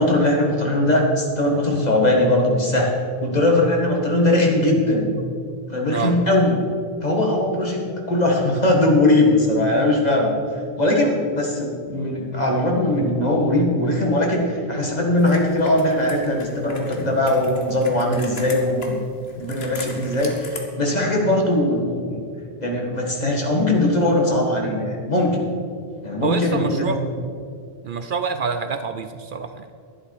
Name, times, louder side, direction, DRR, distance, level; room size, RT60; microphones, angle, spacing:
voice 1, 0.0-2.9 3.2-5.1 5.7-6.6 7.0-10.3 10.8-19.0 19.4-22.2 22.6-25.4 26.0-27.0, left 1 dB, 45° left, 0 dB, 2.0 m, -20 dB
Computer keyboard, 15.2-20.6, left 3 dB, 85° left, 1.7 m, -39 dB
voice 2, 26.2-27.3 27.8-29.7, right 5 dB, 60° right, 9 dB, 0.7 m, -27 dB
11.5 x 11.0 x 4.9 m, 2.2 s
omnidirectional pair, 1.0 m